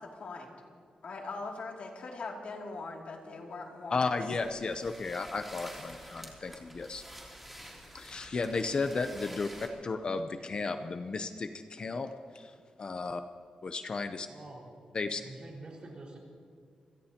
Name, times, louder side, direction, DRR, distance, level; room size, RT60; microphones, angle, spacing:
voice 1, 0.2-0.5 1.0-4.1, left 3 dB, 65° left, 0 dB, 2.7 m, -41 dB
voice 2, 3.9-7.0 7.9-9.5 9.8-12.1 12.3-12.5 12.8-13.2 13.6-14.3 14.9-15.2, left 4 dB, 40° left, 8 dB, 0.7 m, -34 dB
sound 1, 4.3-9.7, equal, 5° right, 3.0 m, -49 dB
voice 3, 14.2-14.8 15.2-16.2, right 2 dB, 45° right, -2 dB, 4.8 m, -47 dB
27.5 x 17.0 x 2.9 m, 2.2 s
wide cardioid pair, 120°, 2 cm